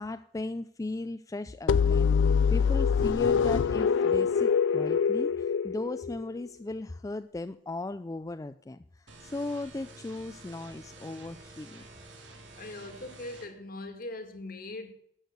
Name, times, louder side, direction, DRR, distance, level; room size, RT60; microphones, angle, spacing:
voice 1, 0.0-2.1 2.5-11.9, left 2 dB, 20° left, 0.3 m, -37 dB
sound 1, 1.7-6.4, left 6 dB, 85° left, 0.4 m, -24 dB
sound 2, 9.1-13.5, right 2 dB, 80° right, 2.6 m, -50 dB
voice 2, 12.6-14.9, left 2 dB, 50° left, 1.7 m, -41 dB
12.0 x 6.4 x 8.0 m
head